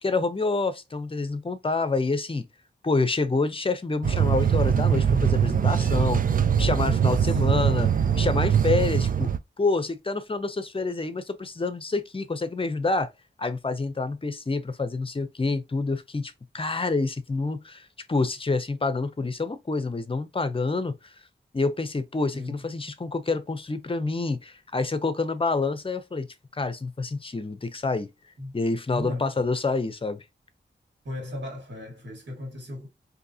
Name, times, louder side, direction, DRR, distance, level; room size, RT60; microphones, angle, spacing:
voice 1, 0.0-2.5 2.8-13.1 13.4-21.1 21.5-26.3 26.5-28.1 28.5-30.2, left 3 dB, 30° left, 0.6 m, -27 dB
sound 1, 4.0-9.4, right 8 dB, 50° right, 0.4 m, -22 dB
voice 2, 7.0-7.4 22.3-22.6 28.4-28.5 28.9-29.3 31.0-32.9, left 1 dB, 75° right, 1.7 m, -36 dB
3.8 x 2.7 x 2.7 m
cardioid pair, 65°, 18 cm